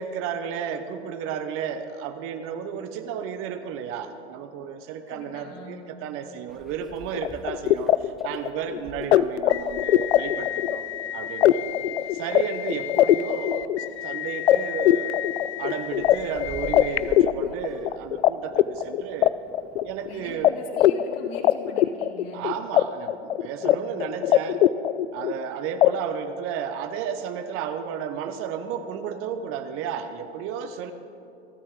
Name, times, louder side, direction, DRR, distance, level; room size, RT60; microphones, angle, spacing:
voice 1, 0.0-10.8 11.1-11.7 12.1-15.2 15.6-19.3 19.8-20.6 22.3-24.6 25.1-30.9, right 8 dB, 40° right, 9 dB, 0.9 m, -33 dB
voice 2, 5.1-5.8 8.7-8.9 20.0-22.4 23.6-23.9, left 4 dB, 50° left, -1 dB, 3.1 m, -42 dB
Meow, 6.5-20.4, equal, ahead, 1.0 m, -49 dB
sound 1, 7.1-18.3 18.6-20.1 20.4-20.5 20.8-22.8 23.1-23.7 24.0-25.4 25.8-25.9, left 12 dB, 80° left, 0.5 m, -22 dB
28.0 x 9.5 x 3.7 m, 2.7 s
hypercardioid pair, 105°, 33 cm